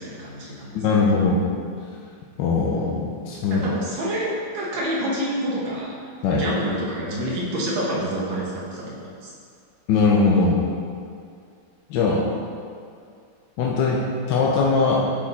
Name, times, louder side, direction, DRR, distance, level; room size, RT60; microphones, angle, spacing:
voice 1, 0.0-0.7 3.5-6.0 6.3-9.3, right 1 dB, 80° right, -5 dB, 2.0 m, -28 dB
voice 2, 0.7-1.4 2.4-3.6 6.2-6.5 9.9-10.6 11.9-12.3 13.6-14.0 14.3-15.1, left 4 dB, 75° left, -3 dB, 1.3 m, -20 dB
8.2 x 4.5 x 4.2 m, 2.3 s
omnidirectional pair, 2.1 m